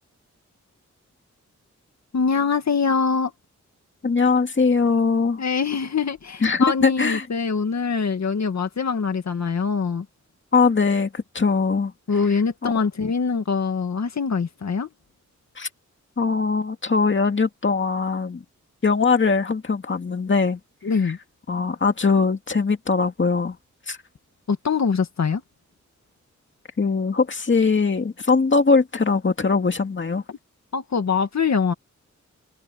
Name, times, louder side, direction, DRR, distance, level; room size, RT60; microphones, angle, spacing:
voice 1, 2.1-3.3 5.4-10.1 12.1-14.9 20.8-21.2 24.5-25.4 30.7-31.7, left 5 dB, 65° left, 2.0 m, -23 dB
voice 2, 4.0-5.4 6.4-7.3 10.5-11.9 12.6-12.7 15.6-15.7 16.2-18.4 18.8-20.6 21.0-21.1 21.5-23.6 23.9-24.0 26.8-30.2, left 4 dB, 40° left, 2.2 m, -21 dB
wide cardioid pair, 90°, 30 cm